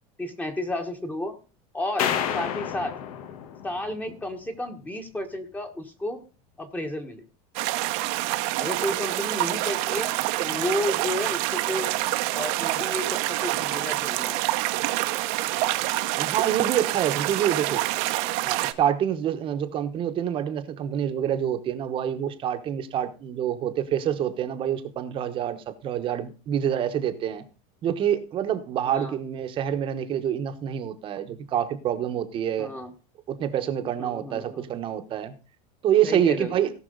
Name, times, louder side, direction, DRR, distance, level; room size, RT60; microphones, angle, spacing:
voice 1, 0.2-1.4 1.7-2.9 3.6-6.3 6.6-7.2 8.6-11.9 12.3-14.4 28.9-29.2 32.6-32.9 34.0-34.7 36.0-36.5, left 1 dB, 10° left, 1.4 m, -32 dB
sound 1, 2.0-4.3, left 9 dB, 85° left, 1.5 m, -30 dB
sound 2, 7.6-18.7, right 17 dB, 55° right, 0.9 m, -27 dB
voice 2, 16.2-17.8 18.4-27.4 27.8-32.7 33.3-35.3 35.8-36.7, right 10 dB, 30° right, 1.2 m, -27 dB
17.5 x 6.0 x 3.9 m
cardioid pair, 170°, 18 cm